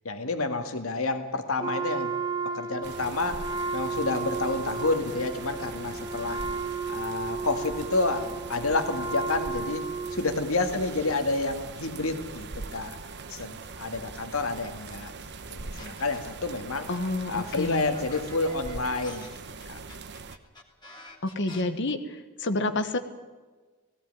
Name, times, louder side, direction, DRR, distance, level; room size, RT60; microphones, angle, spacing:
voice 1, 0.0-2.1 2.5-6.4 6.9-12.5 12.7-13.0 13.3-15.1 15.5-16.9 17.3-19.3 19.7-19.8, left 3 dB, 80° left, 7 dB, 2.0 m, -29 dB
Wind instrument woodwind instrument, 1.6-10.4, right 4 dB, 20° right, 0.9 m, -33 dB
sound 1, 2.8-20.4, right 4 dB, 55° right, 1.0 m, -42 dB
sound 2, 15.8-16.4 16.9-21.6, left 2 dB, 20° left, 2.7 m, -48 dB
voice 2, 16.9-17.9 21.2-22.0 22.4-23.0, left 2 dB, 60° left, 9 dB, 1.4 m, -28 dB
17.5 x 17.0 x 9.4 m, 1.3 s
head